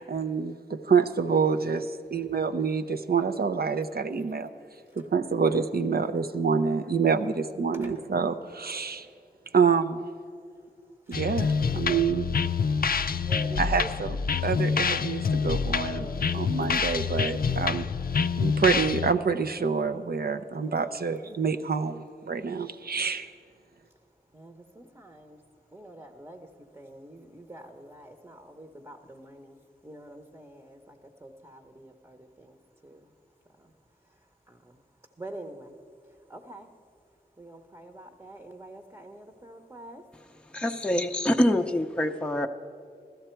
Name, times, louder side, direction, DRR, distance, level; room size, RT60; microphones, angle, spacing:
voice 1, 0.0-4.5 5.0-9.1 9.5-10.0 11.1-12.3 13.6-14.2 14.4-16.1 16.3-17.9 18.4-23.3, right 5 dB, 70° right, 0.6 m, -27 dB
sound 1, 11.1-19.1, left 6 dB, 65° left, 0.4 m, -27 dB
voice 2, 12.9-13.9 15.9-16.4 24.3-25.4 25.7-26.5 26.7-29.6 29.8-32.6 32.8-33.0 34.5-34.8 35.2-35.7 36.3-36.7 37.4-40.0, right 1 dB, 20° right, 0.9 m, -45 dB
voice 3, 40.5-42.5, left 1 dB, 5° left, 0.5 m, -25 dB
15.5 x 13.0 x 4.5 m
wide cardioid pair, 60°, 16 cm